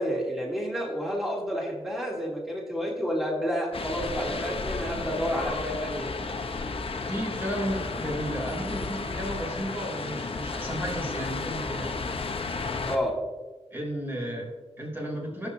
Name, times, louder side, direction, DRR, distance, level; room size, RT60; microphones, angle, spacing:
voice 1, 0.0-6.1 12.9-13.2, equal, 5° right, -3 dB, 3.0 m, -30 dB
sound 1, 3.7-13.0, left 4 dB, 55° left, 0.9 m, -33 dB
voice 2, 7.0-12.0 13.7-15.5, equal, 20° right, -2 dB, 3.4 m, -33 dB
16.0 x 6.9 x 2.8 m, 1.3 s
cardioid pair, 50°, 11 cm